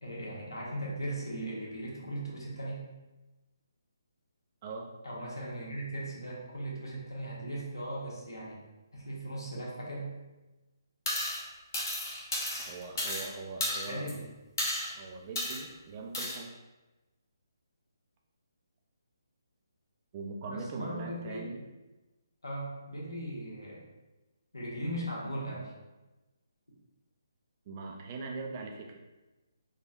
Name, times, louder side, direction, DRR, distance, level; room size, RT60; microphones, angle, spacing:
voice 1, 0.0-2.8 5.0-8.6 8.9-10.1 13.9-14.3 20.5-21.5 22.4-23.8 24.5-25.7, right 1 dB, 80° left, -4 dB, 1.0 m, -38 dB
sound 1, 11.1-11.4 11.7-13.3 13.6-14.1 14.6-14.9 15.4-15.6 16.1-16.4, left 1 dB, 45° left, 1.0 m, -33 dB
voice 2, 12.6-14.0 14.9-16.5 20.1-21.6 27.7-29.0, right 4 dB, 30° right, 2 dB, 0.3 m, -41 dB
3.3 x 2.2 x 2.6 m, 1.1 s
figure-of-eight pair, 145°, 2 cm